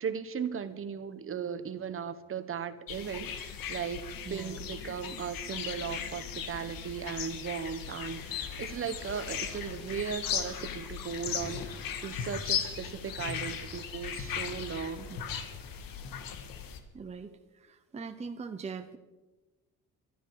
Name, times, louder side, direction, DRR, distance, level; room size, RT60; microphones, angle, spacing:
voice 1, 0.0-4.0 4.3-15.1, right 7 dB, 40° right, 11 dB, 1.0 m, -37 dB
sound 1, 2.9-16.8, left 8 dB, 90° left, 1.7 m, -37 dB
voice 2, 4.2-4.6 15.1-15.2 16.9-19.0, right 5 dB, 20° right, 7 dB, 0.7 m, -41 dB
23.0 x 12.0 x 4.8 m, 1.2 s
cardioid pair, 145°, 33 cm